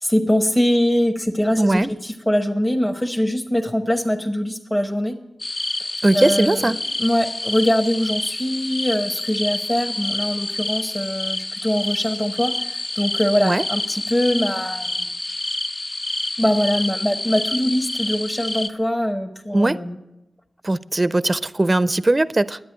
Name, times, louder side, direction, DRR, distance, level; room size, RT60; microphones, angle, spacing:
voice 1, 0.0-5.2 5.8-5.9 6.1-15.1 16.4-20.0, equal, 15° left, 3 dB, 1.0 m, -22 dB
voice 2, 1.6-1.9 6.0-6.8 13.4-13.6 19.5-19.8 20.6-22.6, right 2 dB, 30° right, 16 dB, 0.4 m, -19 dB
sound 1, 5.4-18.7, left 2 dB, 40° left, 0.7 m, -28 dB
10.0 x 9.1 x 9.6 m, 0.96 s
cardioid pair, 55°, 0 cm